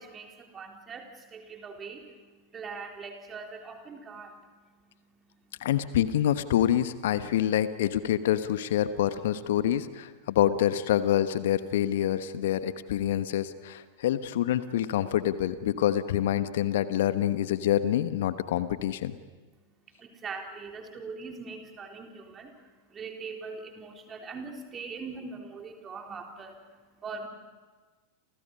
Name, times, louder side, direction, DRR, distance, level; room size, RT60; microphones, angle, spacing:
voice 1, 0.0-5.7 19.5-27.3, right 4 dB, 25° right, 2 dB, 3.9 m, -42 dB
voice 2, 5.6-19.1, left 11 dB, 55° left, 12 dB, 1.2 m, -26 dB
29.5 x 28.5 x 5.5 m, 1.4 s
figure-of-eight pair, 90°, 0 cm